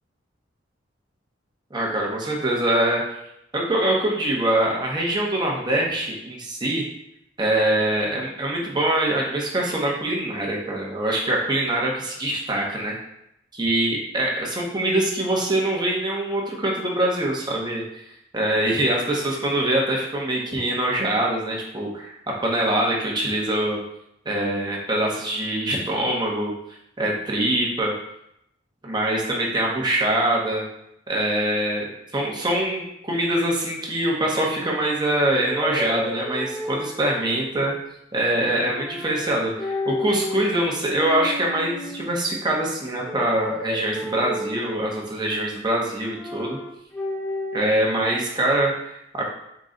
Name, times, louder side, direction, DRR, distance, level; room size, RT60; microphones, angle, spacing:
voice 1, 1.7-3.2 3.5-6.8 7.4-13.0 13.5-17.8 18.3-23.8 24.2-26.5 27.0-27.9 28.8-30.6 31.1-37.7 38.1-46.6 47.5-49.3, right 1 dB, 20° right, -2 dB, 0.8 m, -24 dB
sound 1, 35.4-37.2 38.5-39.3 39.6-40.5 40.9-42.1 43.0-44.9 46.0-47.6, left 1 dB, 5° left, 0.4 m, -31 dB
3.8 x 3.0 x 3.8 m, 0.78 s
head